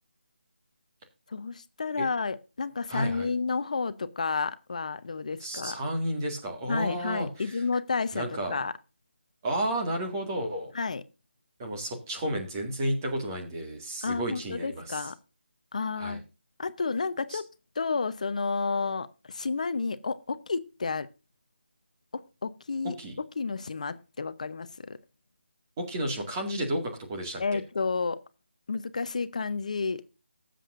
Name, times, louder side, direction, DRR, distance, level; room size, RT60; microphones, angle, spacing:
voice 1, 1.3-5.8 6.7-8.7 10.7-11.0 14.0-15.2 15.7-16.2 16.6-17.4 17.7-21.1 22.1-25.0 27.4-28.2 28.7-30.1, left 4 dB, 40° left, 13 dB, 0.8 m, -31 dB
voice 2, 2.9-3.3 5.4-7.6 8.1-8.6 9.4-10.7 11.6-15.0 16.0-16.2 17.3-17.4 23.0-23.2 25.8-27.6, right 1 dB, 15° right, 2 dB, 1.9 m, -32 dB
18.0 x 7.7 x 2.5 m, 0.31 s
figure-of-eight pair, 175°, 6 cm